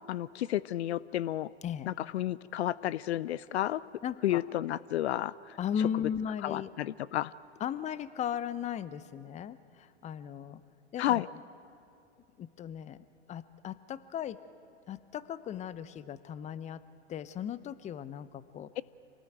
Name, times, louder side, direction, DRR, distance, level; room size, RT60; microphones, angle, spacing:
voice 1, 0.1-1.5 1.9-3.8 4.2-5.6 6.4-7.3 11.0-11.3 18.8-18.9, left 13 dB, 70° left, 20 dB, 0.6 m, -31 dB
voice 2, 4.0-4.4 5.6-6.7 7.6-10.6 10.9-11.3 12.4-14.4 14.9-16.8 17.1-18.7, left 9 dB, 20° left, 16 dB, 0.7 m, -37 dB
26.5 x 19.0 x 9.2 m, 2.5 s
hypercardioid pair, 105°, 34 cm